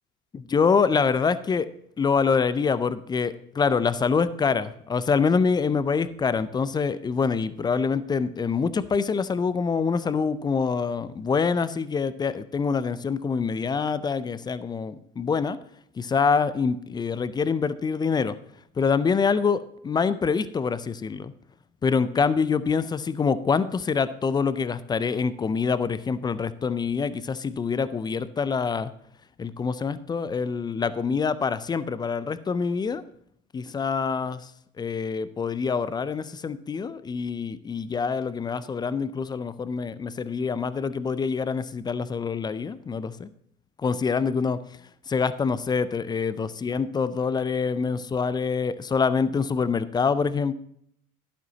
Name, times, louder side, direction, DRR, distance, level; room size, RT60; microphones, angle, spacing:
voice 1, 0.3-1.7 2.0-15.6 16.0-18.4 18.8-21.3 21.8-28.9 29.4-33.0 33.5-34.5 34.8-43.3 43.8-44.6 45.1-50.5, left 5 dB, 10° left, 15 dB, 0.3 m, -25 dB
12.0 x 11.5 x 2.8 m, 0.69 s
figure-of-eight pair, 75°, 45 cm